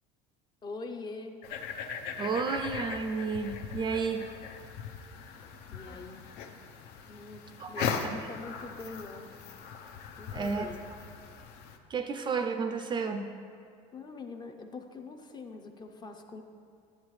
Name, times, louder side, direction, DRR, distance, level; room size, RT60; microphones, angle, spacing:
voice 1, 0.6-1.4 5.7-6.3 7.1-9.3 10.2-10.8 13.9-16.4, left 3 dB, 25° left, 5 dB, 0.5 m, -43 dB
sound 1, 1.4-11.8, left 6 dB, 65° left, 0.6 m, -39 dB
voice 2, 2.2-4.3 7.6-8.2 10.3-10.7 11.9-13.3, right 5 dB, 25° right, 6 dB, 0.4 m, -32 dB
10.0 x 7.4 x 3.1 m, 2.3 s
cardioid pair, 135°, 18 cm